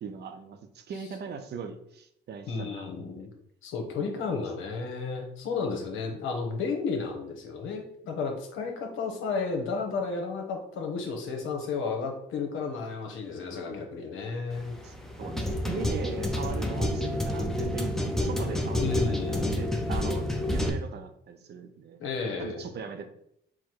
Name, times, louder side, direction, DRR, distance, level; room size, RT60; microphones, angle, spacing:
voice 1, 0.0-3.3 4.0-4.4 14.8-22.0 22.4-23.1, right 6 dB, 55° right, 8 dB, 0.6 m, -40 dB
voice 2, 2.5-3.3 3.6-14.7 18.8-19.5 22.0-22.7, left 4 dB, 85° left, 3 dB, 1.0 m, -33 dB
sound 1, 14.5-20.7, left 1 dB, ahead, 0.6 m, -29 dB
4.7 x 2.1 x 4.5 m, 0.73 s
cardioid pair, 90°, 20 cm